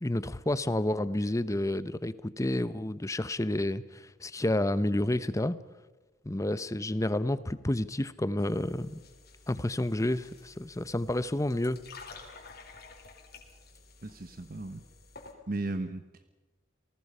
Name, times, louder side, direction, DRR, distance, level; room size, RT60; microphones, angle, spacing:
voice 1, 0.0-5.6 6.2-9.0 9.5-11.8, left 1 dB, 15° left, 15 dB, 0.7 m, -30 dB
sound 1, 8.4-15.3, left 4 dB, 55° left, 3.8 m, -52 dB
voice 2, 14.0-14.8 15.5-16.2, right 2 dB, 50° right, 10 dB, 1.0 m, -36 dB
29.0 x 19.0 x 5.6 m, 1.2 s
head